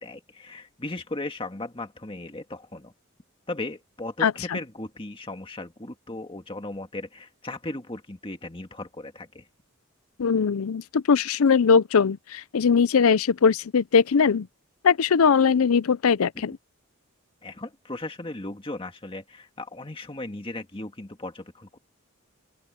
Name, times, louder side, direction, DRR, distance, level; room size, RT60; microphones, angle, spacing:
voice 1, 0.0-2.9 3.5-9.4 17.4-21.8, left 2 dB, 25° left, 1.8 m, -36 dB
voice 2, 4.2-4.6 10.2-14.5 14.8-16.5, left 6 dB, 75° left, 0.5 m, -21 dB
open air
head